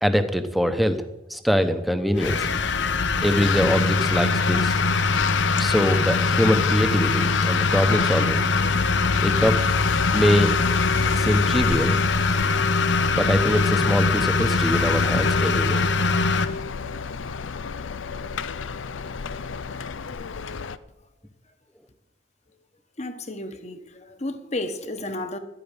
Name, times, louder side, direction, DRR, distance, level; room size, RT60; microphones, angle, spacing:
voice 1, 0.0-1.0 1.3-2.5 3.2-4.8 5.6-8.4 9.2-9.6 10.1-10.5 11.1-12.0 13.1-15.8, equal, ahead, 0.9 m, -23 dB
sound 1, 2.2-16.5, left 4 dB, 70° left, 1.0 m, -22 dB
sound 2, 3.4-20.8, left 5 dB, 85° left, 0.6 m, -31 dB
voice 2, 23.0-25.4, left 1 dB, 35° left, 1.2 m, -32 dB
12.0 x 8.9 x 9.9 m
head